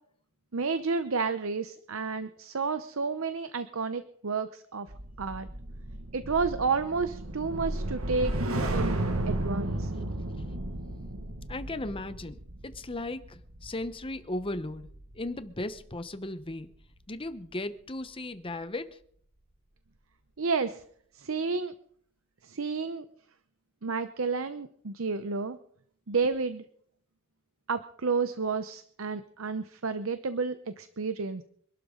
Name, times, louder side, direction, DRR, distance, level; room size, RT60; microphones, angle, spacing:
voice 1, 0.5-4.9 5.2-5.5 6.1-8.3 8.7-9.0 9.3-9.9 20.4-20.8 21.1-21.7 22.4-23.0 23.8-25.6 26.1-26.6 27.7-31.4, right 4 dB, 70° right, 11 dB, 0.8 m, -31 dB
sound 1, 4.9-15.3 15.6-15.9, right 1 dB, 90° right, 1.8 m, -34 dB
voice 2, 11.5-14.9 15.1-16.7 17.1-19.0, left 2 dB, 25° left, 11 dB, 0.9 m, -36 dB
26.0 x 12.5 x 3.8 m, 0.62 s
head